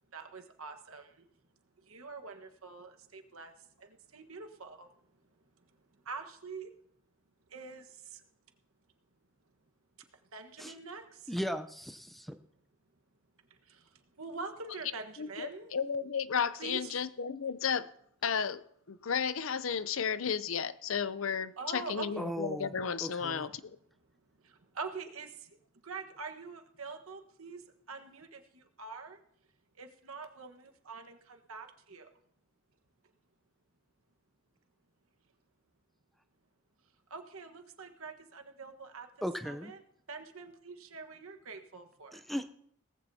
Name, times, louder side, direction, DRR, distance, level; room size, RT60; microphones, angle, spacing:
voice 1, 0.1-1.3 1.8-4.9 5.6-5.7 6.0-6.7 7.5-8.2 10.3-11.4 13.5-15.7 16.6-17.0 21.6-22.2 24.4-25.6 25.8-29.2 29.7-32.1 37.1-39.1 39.4-39.8 40.1-42.2, right 4 dB, 85° right, 5 dB, 1.4 m, -45 dB
voice 2, 11.3-12.4 22.2-22.7 23.0-23.5 39.2-39.7 42.1-42.5, equal, ahead, 9 dB, 0.6 m, -37 dB
voice 3, 15.2-17.9 18.2-18.6 18.9-23.5, left 6 dB, 70° left, 15 dB, 0.6 m, -33 dB
18.5 x 14.5 x 2.8 m, 0.70 s
head